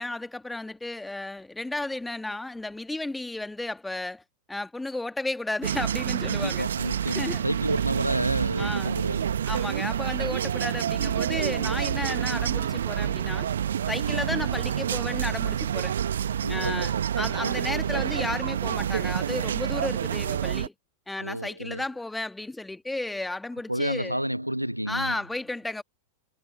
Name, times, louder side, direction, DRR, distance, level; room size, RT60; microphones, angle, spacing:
voice 1, 0.0-4.2 4.5-6.7 7.0-7.4 8.6-9.0 9.5-13.5 13.9-15.9 16.5-20.7 21.1-24.2 24.9-25.8, left 2 dB, 5° left, 1.8 m, -33 dB
sound 1, 5.6-20.7, right 9 dB, 65° right, 1.4 m, -28 dB
voice 2, 6.2-9.5 14.1-14.4 16.4-16.9 21.2-21.8 23.7-25.2, equal, 90° right, 1.3 m, -31 dB
figure-of-eight pair, 90°, 0 cm